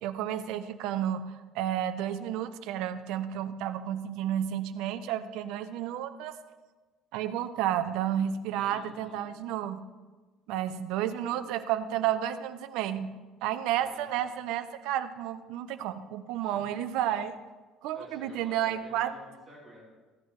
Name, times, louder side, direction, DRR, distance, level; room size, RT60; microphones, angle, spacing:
voice 1, 0.0-6.3 7.1-9.8 10.5-13.1 13.4-17.4 17.8-19.1, right 11 dB, 70° right, 11 dB, 0.6 m, -31 dB
voice 2, 8.5-9.3 13.7-14.0 16.4-16.7 17.9-19.8, equal, 5° left, -10 dB, 4.6 m, -51 dB
15.5 x 11.0 x 3.2 m, 1.3 s
cardioid pair, 175°, 0 cm